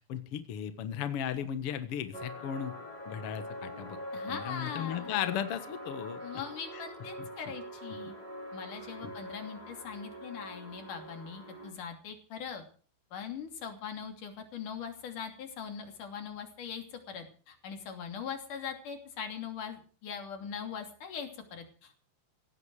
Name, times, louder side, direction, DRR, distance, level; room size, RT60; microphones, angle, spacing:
voice 1, 0.1-2.7 3.1-4.0 4.3-6.2 7.2-7.3 9.0-9.1, left 9 dB, 75° left, 11 dB, 1.3 m, -36 dB
sound 1, 2.1-11.7, equal, 10° left, 6.0 m, -44 dB
voice 2, 4.1-5.3 6.2-8.1 8.5-12.6 13.1-21.9, left 7 dB, 50° left, 5 dB, 4.2 m, -41 dB
17.0 x 16.0 x 4.9 m, 0.40 s
omnidirectional pair, 4.8 m